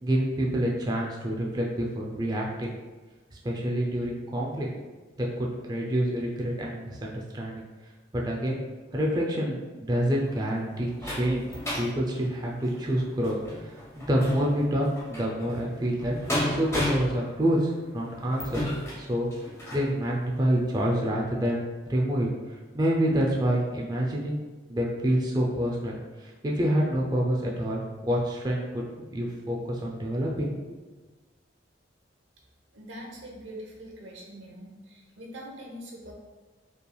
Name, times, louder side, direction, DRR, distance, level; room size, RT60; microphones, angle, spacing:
voice 1, 0.0-2.7 3.4-4.7 5.2-7.6 8.1-8.6 8.9-11.4 11.8-13.4 13.6-16.1 16.5-18.7 19.0-19.3 19.7-24.4 24.7-30.5, equal, 20° right, -2 dB, 0.4 m, -27 dB
sound 1, 10.1-19.9 20.5-20.6 20.9-21.0, left 1 dB, 15° left, 1.1 m, -34 dB
voice 2, 32.7-36.1, equal, 90° right, -1 dB, 0.9 m, -43 dB
5.3 x 3.2 x 2.3 m, 1.3 s
head